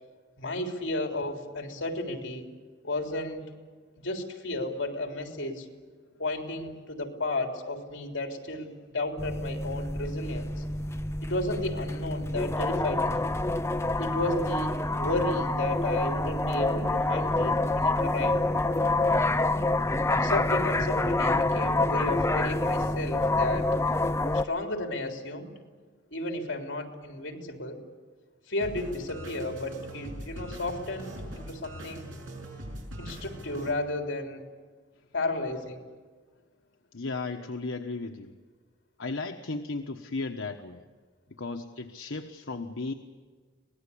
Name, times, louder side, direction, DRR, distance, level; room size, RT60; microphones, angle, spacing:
voice 1, 0.4-2.5 2.8-3.4 4.0-5.7 6.2-10.6 11.2-13.3 14.0-18.4 20.1-23.7 24.2-25.5 26.1-27.8 28.5-32.1 33.0-34.4 35.1-35.8, left 2 dB, 65° left, 3 dB, 3.5 m, -33 dB
sound 1, 9.2-24.4, left 2 dB, 15° left, 0.7 m, -27 dB
sound 2, 28.6-33.7, right 1 dB, 80° right, 7.0 m, -41 dB
voice 2, 36.9-38.3 39.0-40.8 41.4-42.9, left 3 dB, 85° left, 3 dB, 1.2 m, -35 dB
25.0 x 19.5 x 8.6 m, 1.5 s
head